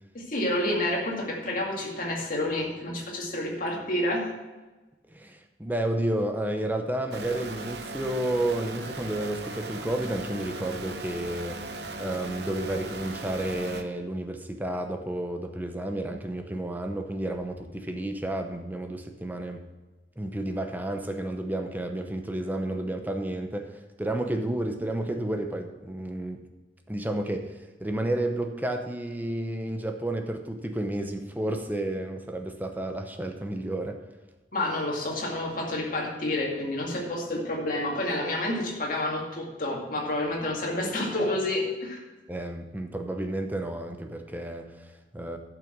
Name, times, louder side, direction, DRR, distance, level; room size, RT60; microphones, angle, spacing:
voice 1, 0.1-4.3 34.5-42.0, left 1 dB, 45° left, -1 dB, 2.2 m, -29 dB
voice 2, 5.1-19.6 20.2-26.4 26.9-34.0 42.3-45.4, right 1 dB, 10° right, 5 dB, 0.7 m, -31 dB
sound 1, 7.1-13.8, right 2 dB, 60° right, 0.8 m, -38 dB
11.0 x 6.0 x 6.0 m, 1.2 s
head